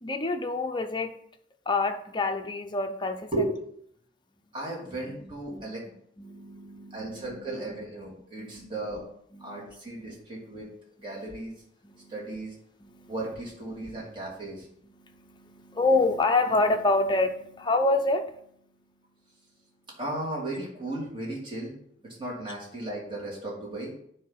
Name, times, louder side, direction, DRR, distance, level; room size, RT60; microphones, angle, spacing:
voice 1, 0.0-1.1 1.7-3.3 4.8-5.2 5.5-5.6 6.2-7.4 8.4-9.0 9.3-10.1 10.4-10.6 11.0-11.3 11.8-12.4 12.8-13.1 13.8-13.9 14.6-18.6, left 3 dB, 25° left, 5 dB, 0.6 m, -28 dB
voice 2, 4.5-5.8 6.9-9.0 9.4-10.7 11.0-11.5 12.1-12.5 13.1-14.7 20.0-21.8 22.0-23.9, right 2 dB, 25° right, -3 dB, 2.3 m, -35 dB
9.4 x 3.3 x 5.5 m, 0.69 s
head